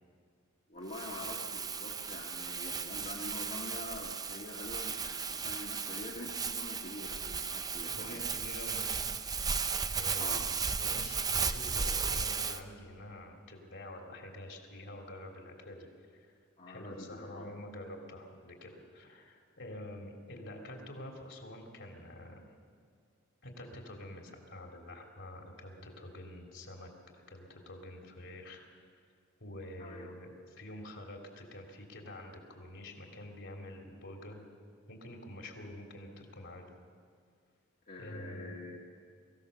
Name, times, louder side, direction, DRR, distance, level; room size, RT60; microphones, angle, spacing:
voice 1, 0.7-8.3 10.2-10.5 16.6-17.5 29.8-30.1 37.9-38.8, left 2 dB, 45° left, -3 dB, 1.8 m, -45 dB
Crumpling crinkling, 0.9-12.6, right 5 dB, 20° right, 0.6 m, -35 dB
voice 2, 7.9-9.2 9.9-10.3 10.8-16.4 16.7-22.4 23.4-26.9 27.3-28.6 29.4-34.5 34.9-36.6 38.0-38.6, left 1 dB, 60° left, 2 dB, 3.3 m, -47 dB
23.5 x 16.0 x 6.9 m, 2.1 s
head